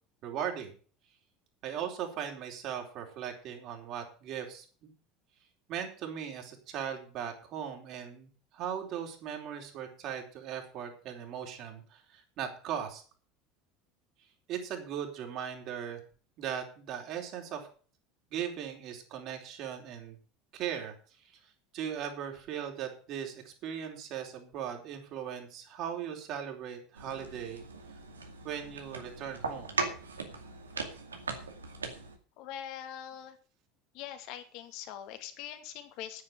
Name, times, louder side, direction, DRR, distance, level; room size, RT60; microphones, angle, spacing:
voice 1, 0.2-0.7 1.6-4.9 5.7-13.0 14.5-16.0 16.4-17.7 18.3-20.2 20.5-27.6 28.4-29.8, right 8 dB, 50° right, 3 dB, 4.2 m, -38 dB
sound 1, 27.0-32.2, right 4 dB, 85° right, 2.2 m, -39 dB
voice 2, 32.4-33.4 33.9-36.2, left 10 dB, 60° left, 8 dB, 2.5 m, -43 dB
10.0 x 9.6 x 8.0 m, 0.41 s
figure-of-eight pair, 70°, 0 cm